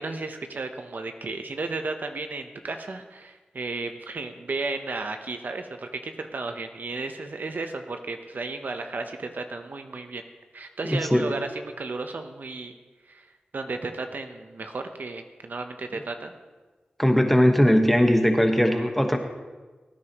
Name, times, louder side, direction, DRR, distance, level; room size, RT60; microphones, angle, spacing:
voice 1, 0.0-10.2 10.5-12.7 13.1-13.3 13.5-16.3, right 3 dB, 65° right, 6 dB, 0.8 m, -34 dB
voice 2, 10.8-11.2 17.0-19.2, equal, 5° left, 4 dB, 1.3 m, -19 dB
17.5 x 9.8 x 3.0 m, 1.3 s
wide cardioid pair, 60°, 3 cm